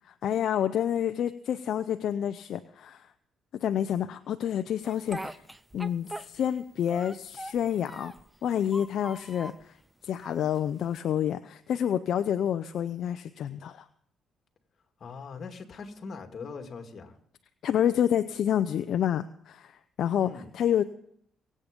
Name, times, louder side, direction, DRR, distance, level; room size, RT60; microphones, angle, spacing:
voice 1, 0.1-3.1 3.5-5.4 5.7-8.1 8.4-9.7 10.0-13.9 17.6-20.8, left 9 dB, 70° left, 9 dB, 0.6 m, -28 dB
Speech, 4.8-6.6 6.9-8.3 8.7-9.6 10.2-11.0, right 1 dB, 10° right, 0.7 m, -42 dB
voice 2, 15.0-17.1 20.2-20.5, left 4 dB, 50° left, 5 dB, 2.4 m, -41 dB
23.0 x 8.7 x 5.3 m, 0.68 s
cardioid pair, 90°, 0 cm